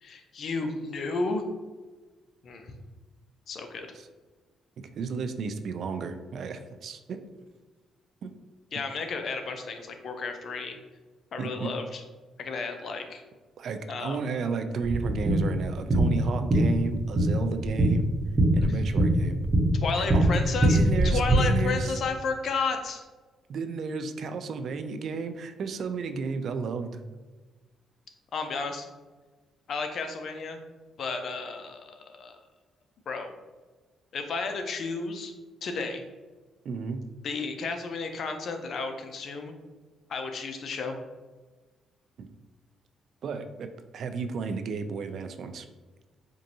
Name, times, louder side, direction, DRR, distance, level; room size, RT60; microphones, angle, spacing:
voice 1, 0.0-1.4 2.4-2.7 3.5-3.9 8.7-10.8 11.3-12.0 12.4-13.2 13.9-14.2 18.7-18.8 19.8-20.8 21.0-23.0 28.3-28.9 29.7-30.6 31.0-32.3 33.1-33.3 34.1-35.3 35.6-36.0 37.2-39.5 40.1-41.0, left 4 dB, 60° left, 5 dB, 0.5 m, -32 dB
voice 2, 5.0-7.2 8.2-8.3 11.4-11.7 13.6-18.1 18.5-19.4 19.9-22.0 23.5-27.0 36.7-37.0 42.2-42.3 43.2-43.7 43.9-45.7, right 5 dB, 60° right, 8 dB, 0.3 m, -33 dB
sound 1, 14.8-21.4, right 1 dB, 30° right, 1.1 m, -23 dB
4.5 x 2.5 x 2.7 m, 1.3 s
cardioid pair, 90°, 0 cm